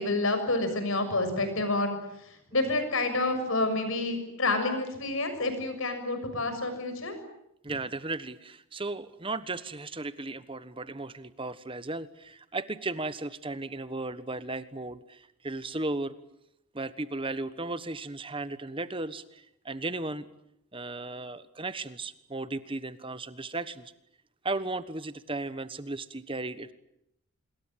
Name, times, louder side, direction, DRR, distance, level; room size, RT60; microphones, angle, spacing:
voice 1, 0.0-7.2, left 2 dB, 65° left, 8 dB, 6.6 m, -29 dB
voice 2, 7.6-16.1 16.7-20.3 20.7-23.9 24.4-26.7, right 2 dB, 25° right, 14 dB, 1.3 m, -35 dB
26.5 x 22.0 x 9.2 m, 0.78 s
head